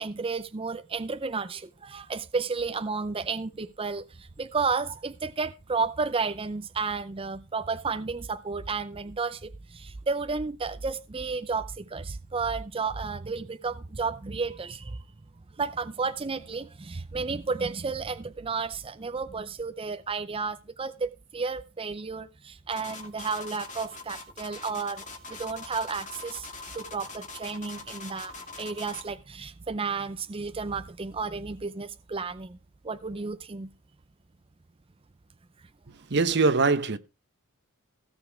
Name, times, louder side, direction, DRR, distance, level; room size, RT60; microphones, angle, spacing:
voice 1, 0.0-15.0 15.5-25.0 25.3-26.5 26.7-32.6 32.8-33.7, right 4 dB, 25° right, 0.5 m, -32 dB
sound 1, 22.7-29.1, left 3 dB, 35° left, 2.5 m, -42 dB
voice 2, 36.1-37.0, right 3 dB, 55° right, 1.0 m, -22 dB
16.5 x 7.0 x 4.8 m
head